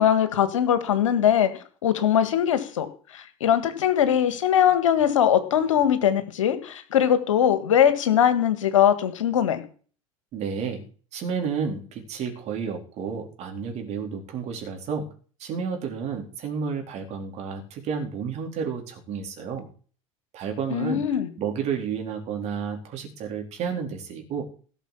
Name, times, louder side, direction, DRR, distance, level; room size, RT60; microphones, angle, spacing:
voice 1, 0.0-1.5 1.8-2.9 3.1-9.6 20.7-21.3, left 9 dB, 65° left, 10 dB, 1.9 m, -21 dB
voice 2, 10.3-10.8 11.1-15.1 15.4-19.7 20.3-21.0 21.4-24.4, right 6 dB, 40° right, 3 dB, 4.0 m, -31 dB
17.0 x 6.6 x 7.2 m, 0.42 s
figure-of-eight pair, 80°, 18 cm